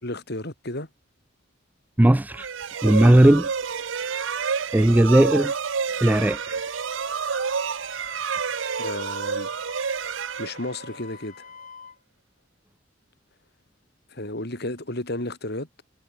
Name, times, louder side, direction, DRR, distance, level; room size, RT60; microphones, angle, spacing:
voice 1, 0.0-0.9 8.8-9.5 10.4-11.5 14.1-15.8, left 1 dB, 60° left, 4.7 m, -33 dB
voice 2, 2.0-2.5 2.8-3.5 4.7-5.5 6.0-6.4, right 1 dB, 10° right, 0.4 m, -16 dB
sound 1, 2.3-11.1, right 6 dB, 90° right, 0.8 m, -29 dB
Wind instrument woodwind instrument, 6.3-12.0, left 6 dB, 45° left, 2.3 m, -46 dB
head